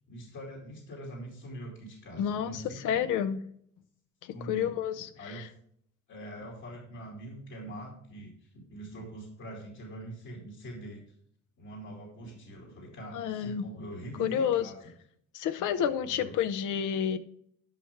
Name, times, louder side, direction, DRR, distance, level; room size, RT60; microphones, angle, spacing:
voice 1, 0.1-3.1 4.3-4.8 5.2-5.4 6.1-11.0 11.6-14.8 15.8-16.3, right 1 dB, 75° left, -2 dB, 2.7 m, -43 dB
voice 2, 2.2-3.4 4.2-5.1 5.4-5.5 13.1-13.7 14.2-14.7 15.3-17.2, left 9 dB, 90° left, 12 dB, 0.7 m, -30 dB
11.0 x 5.8 x 3.5 m, 0.66 s
cardioid pair, 90°, 30 cm